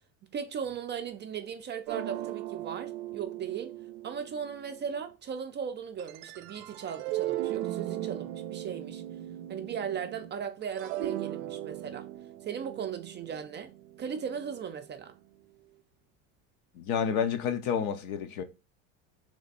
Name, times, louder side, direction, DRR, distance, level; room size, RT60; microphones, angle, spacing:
voice 1, 0.2-3.7 4.0-9.0 9.5-12.1 12.4-15.2, right 7 dB, 25° right, 0.4 m, -37 dB
sound 1, 1.9-5.0 6.0-10.3 10.6-14.8, right 14 dB, 75° right, 0.5 m, -38 dB
voice 2, 16.7-18.4, left 7 dB, 70° left, 0.8 m, -29 dB
3.3 x 3.2 x 3.9 m
supercardioid pair, 105°, 41 cm